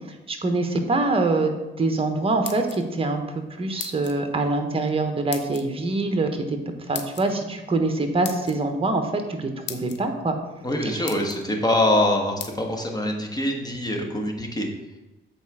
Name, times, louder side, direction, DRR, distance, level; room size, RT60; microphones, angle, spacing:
voice 1, 0.3-3.2 3.6-6.6 6.9-10.4 10.8-11.1, right 2 dB, 30° right, 5 dB, 1.2 m, -24 dB
sound 1, 2.2-3.1 3.8-4.2 5.3-5.6 6.9-7.3 8.2-8.6 9.3-9.4 9.7-10.0 10.6-10.7 11.1-11.4 12.4-12.5, left 8 dB, 60° left, 0.8 m, -36 dB
voice 2, 10.6-14.7, left 1 dB, 20° left, 1 dB, 1.3 m, -24 dB
8.2 x 4.3 x 4.8 m, 1.0 s
cardioid pair, 90°, 20 cm